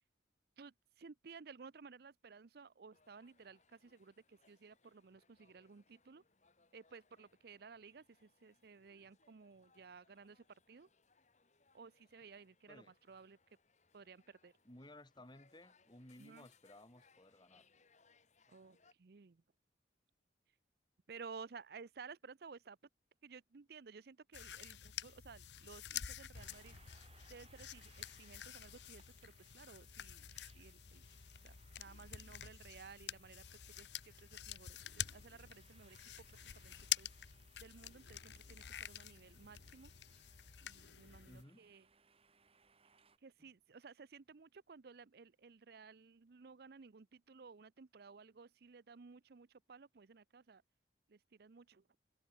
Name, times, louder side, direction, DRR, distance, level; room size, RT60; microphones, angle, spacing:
voice 1, 0.6-6.2 6.7-10.9 11.7-13.4 13.9-14.5 16.2-16.5 18.5-19.4 21.1-22.8 23.2-26.8 27.3-30.3 30.5-31.1 31.4-33.4 33.8-33.9 34.2-36.2 36.6-37.1 37.6-39.9 40.6-41.8 43.2-50.6 51.1-51.8, right 5 dB, 60° right, 0.6 m, -56 dB
sound 1, 2.9-18.9, left 4 dB, 40° left, 4.1 m, -73 dB
voice 2, 14.6-17.7 41.3-41.7 43.4-43.5, left 1 dB, 25° left, 4.1 m, -58 dB
sound 2, 24.3-41.4, left 11 dB, 80° left, 0.9 m, -48 dB
sound 3, 26.3-43.2, right 5 dB, 35° right, 3.0 m, -70 dB
head